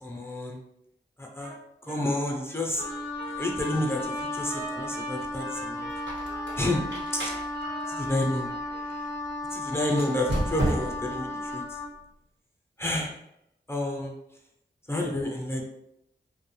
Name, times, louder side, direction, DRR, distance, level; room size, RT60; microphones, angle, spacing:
voice 1, 0.0-0.6 1.2-1.5 1.8-2.8 3.4-5.9 6.6-6.8 7.1-7.3 7.9-8.5 9.5-11.6 12.8-13.2 13.7-14.1 14.9-15.7, left 1 dB, 15° left, -1 dB, 0.5 m, -30 dB
Trumpet, 1.4-1.6 1.9-8.1, right 2 dB, 60° right, 0.7 m, -43 dB
Wind instrument woodwind instrument, 2.8-11.9, left 1 dB, 80° left, 0.5 m, -35 dB
Squeak, 5.9-9.1 9.9-11.2, equal, 85° right, 1.0 m, -33 dB
2.3 x 2.1 x 3.1 m, 0.81 s
wide cardioid pair, 55°, 18 cm